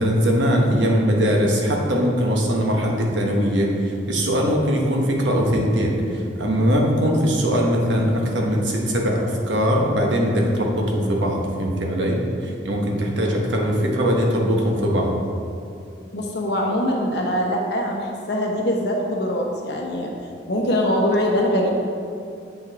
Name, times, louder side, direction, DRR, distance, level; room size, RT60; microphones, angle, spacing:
voice 1, 0.0-15.2, equal, 85° right, 0 dB, 1.2 m, -21 dB
voice 2, 16.1-20.1 20.5-21.7, equal, 65° left, -1 dB, 1.1 m, -22 dB
7.9 x 5.4 x 3.6 m, 2.5 s
head